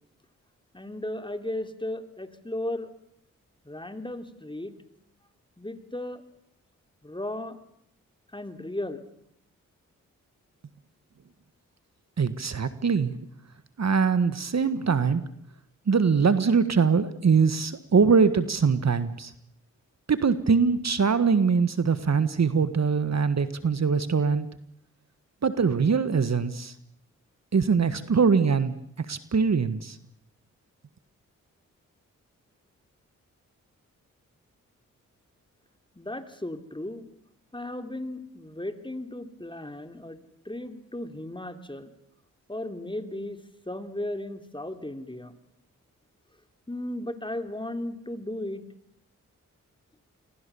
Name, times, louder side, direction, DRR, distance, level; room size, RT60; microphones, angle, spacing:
voice 1, 0.7-2.9 3.6-4.7 5.6-6.2 7.0-7.6 8.3-9.0 35.9-37.1 37.5-40.2 40.4-41.9 42.5-43.4 43.7-45.3 46.7-48.6, left 1 dB, 15° left, 8 dB, 3.0 m, -35 dB
voice 2, 12.2-13.1 13.8-15.2 15.9-19.3 20.1-24.5 25.4-26.7 27.5-30.0, right 5 dB, 50° right, 13 dB, 1.5 m, -23 dB
28.0 x 23.0 x 7.0 m, 0.75 s
supercardioid pair, 40°, 34 cm